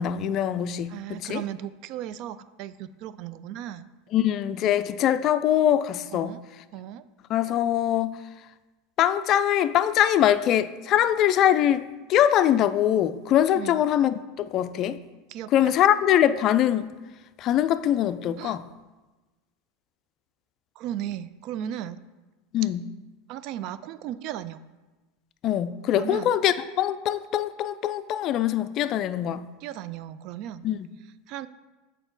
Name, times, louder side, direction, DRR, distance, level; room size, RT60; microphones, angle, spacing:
voice 1, 0.0-1.4 4.1-6.4 7.3-8.2 9.0-11.8 12.1-15.0 15.5-16.9 17.4-18.6 22.5-22.8 25.4-29.5 30.6-30.8, left 11 dB, 45° left, 0.3 m, -23 dB
voice 2, 0.9-3.9 6.1-6.4 6.7-7.1 13.5-13.8 15.3-15.8 18.4-18.6 20.8-22.0 23.3-24.6 26.0-26.3 29.6-30.7 31.3-31.5, right 11 dB, 55° right, 0.3 m, -36 dB
6.9 x 4.4 x 3.9 m
hypercardioid pair, 90°, 0 cm